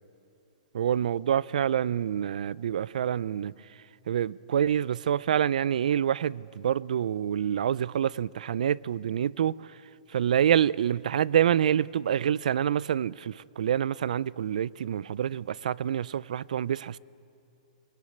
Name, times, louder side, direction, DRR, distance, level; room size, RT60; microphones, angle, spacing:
voice 1, 0.7-3.5 4.1-9.6 10.1-17.0, right 9 dB, 75° right, 0.5 m, -27 dB
22.0 x 20.5 x 9.7 m
hypercardioid pair, 165°, 4 cm